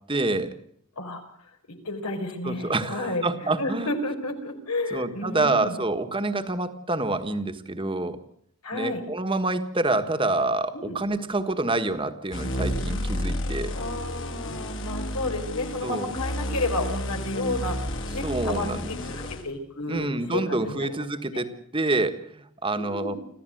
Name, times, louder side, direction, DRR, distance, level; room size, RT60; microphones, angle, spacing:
voice 1, 0.1-0.5 2.4-3.9 4.9-8.2 8.7-13.7 15.8-16.1 18.2-19.2 19.9-23.2, right 2 dB, 25° right, 8 dB, 1.4 m, -27 dB
voice 2, 1.8-3.2 3.6-5.7 8.6-9.0 10.7-10.9 13.7-17.8 18.1-21.0 21.3-21.4 22.7-23.2, left 2 dB, 90° left, 4 dB, 4.7 m, -31 dB
sound 1, 12.3-19.5, left 1 dB, 55° left, 2.7 m, -31 dB
26.5 x 15.0 x 7.8 m, 0.70 s
head